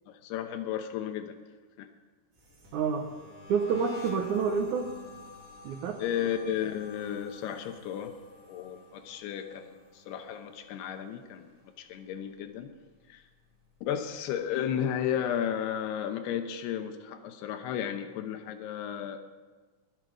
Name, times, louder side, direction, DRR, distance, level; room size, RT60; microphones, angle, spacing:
voice 1, 0.1-1.4 1.8-1.9 6.0-8.1 8.5-11.5 11.8-12.7 13.1-13.2 13.8-19.2, left 9 dB, 85° left, 7 dB, 3.0 m, -33 dB
sound 1, 2.3-11.5 11.8-12.2 12.6-14.1, left 3 dB, 30° right, 2.7 m, -50 dB
voice 2, 2.7-3.1 3.5-4.9 5.6-6.0, right 6 dB, 70° right, 4 dB, 1.8 m, -28 dB
22.0 x 8.1 x 5.1 m, 1.3 s
omnidirectional pair, 4.6 m